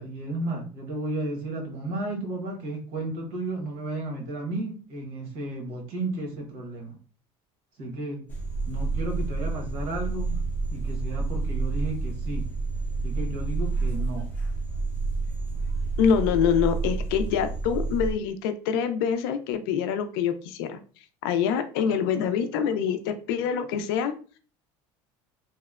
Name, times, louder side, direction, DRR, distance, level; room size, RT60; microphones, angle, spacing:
voice 1, 0.0-7.0 7.8-8.2 8.7-10.4 10.7-12.4 13.0-14.3, right 2 dB, 65° right, 0 dB, 1.0 m, -33 dB
sound 1, 8.3-18.1, right 3 dB, 15° left, 0.4 m, -29 dB
voice 2, 16.0-20.8 21.2-24.1, left 7 dB, 85° left, 9 dB, 0.4 m, -25 dB
2.8 x 2.1 x 2.3 m, 0.39 s
cardioid pair, 160°, 12 cm